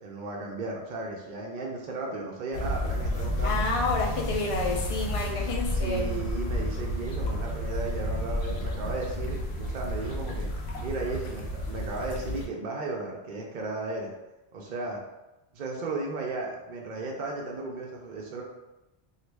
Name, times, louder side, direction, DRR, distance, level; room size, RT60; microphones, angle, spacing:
voice 1, 0.0-3.6 5.7-10.5 10.8-14.1 14.5-15.0 15.5-18.4, right 3 dB, 55° right, -1 dB, 0.6 m, -35 dB
sound 1, 2.5-12.5, left 1 dB, 75° left, 0.8 m, -31 dB
voice 2, 3.4-6.2, left 3 dB, 50° left, 0 dB, 0.4 m, -29 dB
3.0 x 2.4 x 3.3 m, 0.98 s
omnidirectional pair, 1.1 m